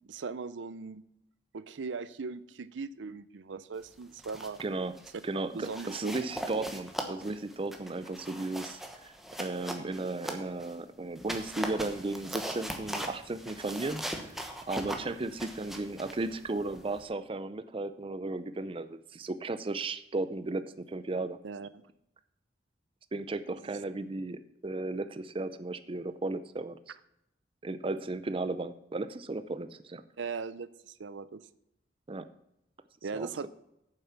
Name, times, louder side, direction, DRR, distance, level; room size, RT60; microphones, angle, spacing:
voice 1, 0.0-1.0 1.5-4.6 5.6-6.1 21.4-21.8 30.2-31.4 33.0-33.5, right 4 dB, 85° right, 16 dB, 0.5 m, -39 dB
sound 1, 4.0-4.7 5.0-5.2 5.6-10.7 11.1-17.0, right 1 dB, ahead, 1.1 m, -40 dB
voice 2, 4.6-4.9 5.2-8.8 9.0-9.1 9.4-14.3 14.7-21.4 23.1-26.9 27.6-30.0 32.1-32.3 33.1-33.5, right 2 dB, 30° right, 12 dB, 0.5 m, -35 dB
8.9 x 7.4 x 5.8 m, 0.81 s
head